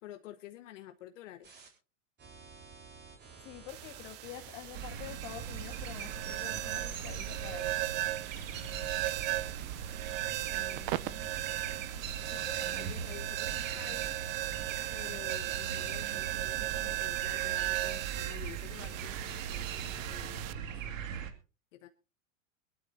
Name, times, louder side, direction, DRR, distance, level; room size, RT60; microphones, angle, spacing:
voice 1, 0.0-1.5 10.5-11.4 12.2-14.2 14.9-20.9 21.7-21.9, left 13 dB, 65° left, 1.3 m, -50 dB
sound 1, 1.4-1.7 2.2-18.2 18.7-20.4, right 5 dB, 25° right, 4.2 m, -52 dB
voice 2, 3.4-7.8, left 13 dB, 45° left, 1.6 m, -47 dB
sound 2, 3.7-20.5, right 17 dB, 45° right, 0.7 m, -37 dB
sound 3, 4.7-21.3, right 8 dB, 75° right, 2.2 m, -40 dB
23.5 x 12.0 x 2.7 m
hypercardioid pair, 125°, 40 cm